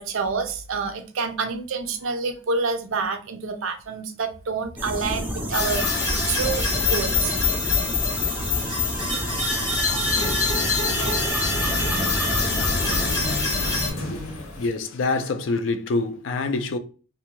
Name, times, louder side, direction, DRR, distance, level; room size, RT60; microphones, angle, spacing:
voice 1, 0.0-7.4 9.5-9.7, right 4 dB, 70° right, 0.5 m, -28 dB
sound 1, 4.8-13.2, equal, 10° right, 0.4 m, -31 dB
sound 2, 5.5-13.9, left 3 dB, 15° left, 0.7 m, -24 dB
sound 3, 9.3-14.7, left 1 dB, 90° left, 0.7 m, -32 dB
voice 2, 14.6-16.8, left 3 dB, 60° left, 0.4 m, -25 dB
2.6 x 2.1 x 2.9 m
head